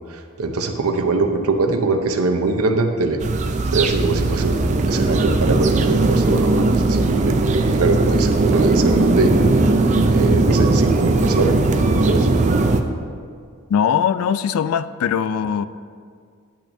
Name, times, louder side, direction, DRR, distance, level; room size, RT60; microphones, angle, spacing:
voice 1, 0.4-3.2 3.7-9.3 10.1-11.6 11.9-12.4, right 3 dB, 80° right, 6 dB, 0.7 m, -22 dB
sound 1, 3.2-12.8, right 2 dB, 30° right, 0.4 m, -18 dB
voice 2, 13.7-15.6, left 7 dB, 75° left, 14 dB, 0.3 m, -20 dB
10.5 x 8.8 x 2.7 m, 2.1 s
head